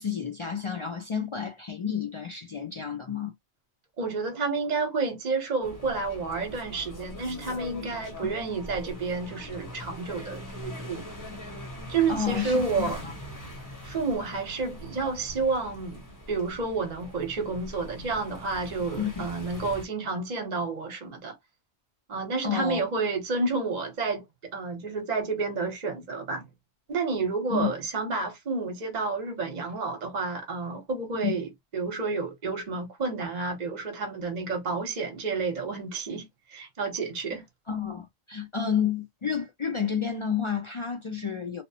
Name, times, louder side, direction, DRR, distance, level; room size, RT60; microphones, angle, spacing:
voice 1, 0.0-3.3 8.2-8.3 12.1-13.1 19.0-19.3 22.4-22.8 27.5-27.7 31.1-31.4 37.7-41.6, left 7 dB, 55° left, 0.3 m, -30 dB
voice 2, 4.0-11.0 11.9-13.0 13.8-21.3 22.1-26.5 26.9-37.4, right 4 dB, 40° right, 0.9 m, -30 dB
sound 1, 5.6-19.9, left 1 dB, 20° left, 0.8 m, -42 dB
2.8 x 2.0 x 2.7 m
omnidirectional pair, 1.2 m